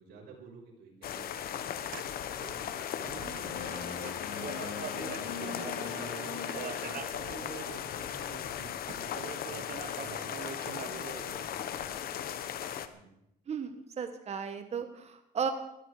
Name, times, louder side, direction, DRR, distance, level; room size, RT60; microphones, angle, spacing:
voice 1, 0.0-4.5 4.8-6.9 7.2-12.5 12.9-13.2, right 3 dB, 80° right, -2 dB, 6.0 m, -51 dB
sound 1, 1.0-12.9, left 10 dB, 60° left, 1.3 m, -37 dB
sound 2, 1.4-8.3 8.7-11.3, right 8 dB, 55° right, 1.3 m, -45 dB
sound 3, 3.4-7.9, left 5 dB, 80° left, 5.0 m, -42 dB
voice 2, 13.5-15.5, right 6 dB, 40° right, 7 dB, 1.5 m, -35 dB
19.5 x 14.0 x 4.9 m, 0.83 s
cardioid pair, 110°, 17 cm